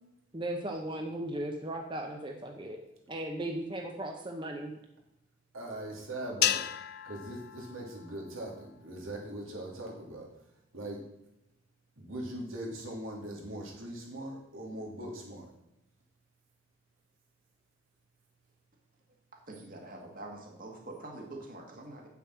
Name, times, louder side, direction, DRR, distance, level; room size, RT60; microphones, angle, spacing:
voice 1, 0.3-2.8 3.1-4.7, right 1 dB, 25° right, 3 dB, 0.8 m, -36 dB
voice 2, 5.5-6.6 7.0-10.3 10.7-11.0 12.0-15.5, right 1 dB, 85° right, -1 dB, 2.7 m, -40 dB
sound 1, 6.4-8.9, left 13 dB, 55° left, 0.4 m, -34 dB
voice 3, 19.5-22.1, right 2 dB, 45° right, 1 dB, 1.9 m, -45 dB
8.2 x 6.9 x 6.0 m, 0.85 s
head